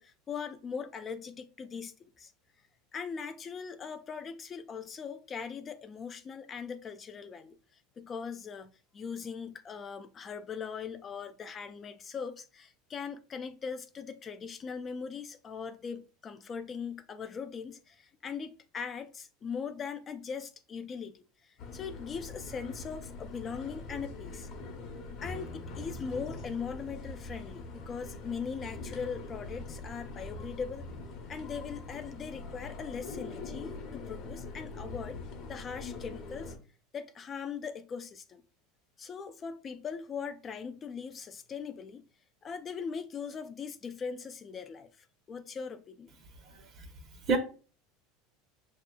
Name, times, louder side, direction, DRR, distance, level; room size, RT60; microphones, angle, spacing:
voice 1, 0.0-2.3 2.9-24.5 25.2-30.9 31.3-35.2 35.5-36.5 36.9-38.4 39.0-42.0 42.4-46.1, left 6 dB, 30° left, 0.3 m, -40 dB
sound 1, 21.6-36.6, left 3 dB, 50° left, 0.8 m, -43 dB
voice 2, 46.4-46.9 47.3-47.4, right 4 dB, 45° right, 0.9 m, -30 dB
6.0 x 2.7 x 2.2 m
supercardioid pair, 110°, 0 cm